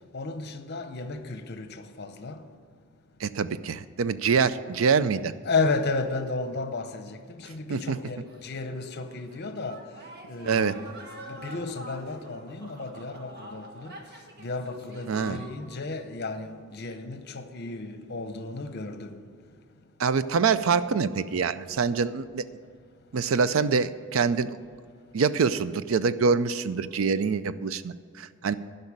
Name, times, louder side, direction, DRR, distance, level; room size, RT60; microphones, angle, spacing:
voice 1, 0.1-2.4 5.4-9.8 10.3-10.9 11.3-13.9 14.4-19.2, left 3 dB, 55° left, 0.8 m, -33 dB
voice 2, 3.2-5.3 7.7-8.0 10.5-10.8 15.1-15.4 20.0-22.4 23.1-24.6 25.1-28.5, right 5 dB, 80° right, 0.5 m, -25 dB
sound 1, 8.3-15.9 16.3-16.9, right 1 dB, 55° right, 1.6 m, -46 dB
12.0 x 5.5 x 8.7 m
head